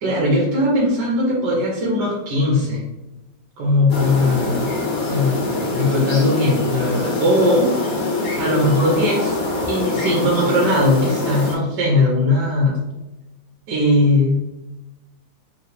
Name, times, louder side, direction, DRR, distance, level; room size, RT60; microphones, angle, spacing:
voice 1, 0.0-2.8 3.6-4.7 5.1-5.4 5.7-7.7 8.3-9.4 9.7-12.8 13.7-14.4, left 1 dB, 80° right, -3 dB, 1.5 m, -19 dB
sound 1, 3.9-11.5, left 2 dB, 90° left, 1.7 m, -24 dB
3.7 x 3.1 x 3.3 m, 1.0 s
omnidirectional pair, 1.8 m